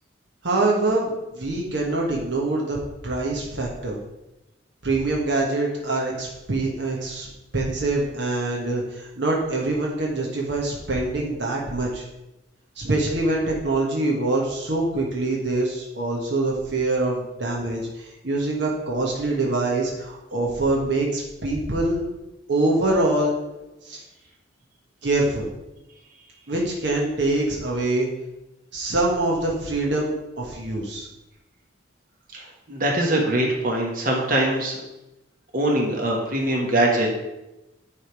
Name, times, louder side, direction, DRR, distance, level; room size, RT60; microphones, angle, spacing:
voice 1, 0.4-2.8 3.0-4.0 4.8-7.3 7.5-12.0 12.8-22.0 22.5-23.4 23.8-24.0 25.0-25.5 26.5-28.1 28.7-31.1, right 2 dB, 70° right, -2 dB, 1.2 m, -24 dB
voice 2, 32.3-34.8 35.5-37.1, right 1 dB, 45° right, 0 dB, 1.4 m, -22 dB
9.8 x 3.5 x 4.7 m, 0.96 s
head